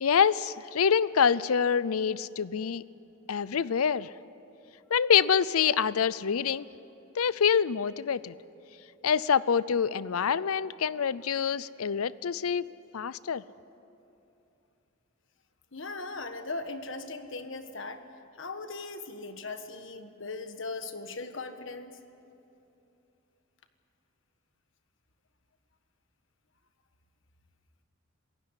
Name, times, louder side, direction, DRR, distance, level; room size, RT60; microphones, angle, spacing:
voice 1, 0.0-2.8 3.3-4.1 4.9-6.7 7.2-8.3 9.0-13.4, left 7 dB, 90° left, 18 dB, 0.5 m, -26 dB
voice 2, 15.7-18.0 18.4-22.0, left 3 dB, 60° left, 8 dB, 1.5 m, -39 dB
27.5 x 16.0 x 9.8 m, 2.9 s
head